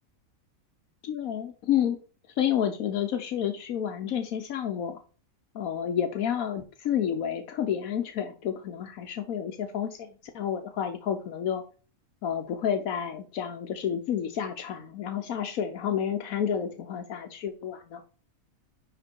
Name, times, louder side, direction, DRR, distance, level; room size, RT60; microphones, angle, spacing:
voice 1, 1.0-2.0 2.4-5.0 5.5-11.6 12.2-18.0, left 9 dB, 80° left, 6 dB, 1.3 m, -30 dB
10.5 x 3.7 x 4.5 m, 0.38 s
omnidirectional pair, 1.5 m